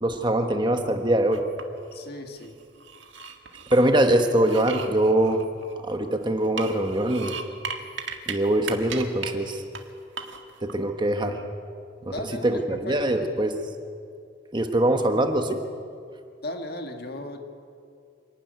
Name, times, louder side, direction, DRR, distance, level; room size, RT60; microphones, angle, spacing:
voice 1, 0.0-1.4 3.7-5.4 5.8-7.3 8.3-9.6 10.6-11.4 12.0-13.5 14.5-15.6, right 1 dB, 25° right, 5 dB, 1.3 m, -23 dB
sound 1, 1.3-2.0 2.4-3.9 4.4-6.0 6.4-8.3 8.6-9.3 9.7-9.8 10.2-10.7, right 5 dB, 75° right, 1.8 m, -36 dB
voice 2, 1.9-2.6 12.1-13.4 16.4-17.4, left 1 dB, 55° left, 4 dB, 2.0 m, -36 dB
26.5 x 12.5 x 9.4 m, 2.3 s
head